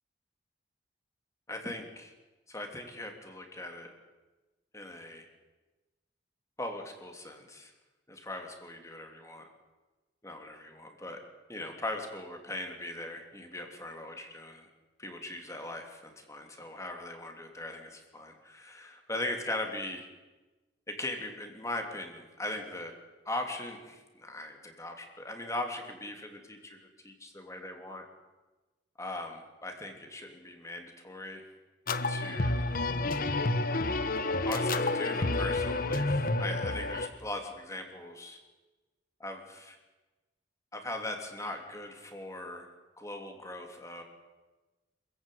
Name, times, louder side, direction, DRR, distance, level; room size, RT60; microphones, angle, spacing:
voice 1, 1.5-2.1 2.5-3.9 4.7-5.3 6.6-7.7 8.1-9.5 10.2-11.2 11.5-14.7 15.0-20.1 20.9-22.9 23.2-28.0 29.0-31.5 32.1-32.6 34.4-38.4 39.2-39.8 40.7-42.7 43.0-44.0, left 2 dB, 15° left, 4 dB, 3.1 m, -40 dB
sound 1, 31.9-37.1, left 2 dB, 50° left, 1.2 m, -29 dB
27.0 x 15.0 x 9.4 m, 1.2 s
head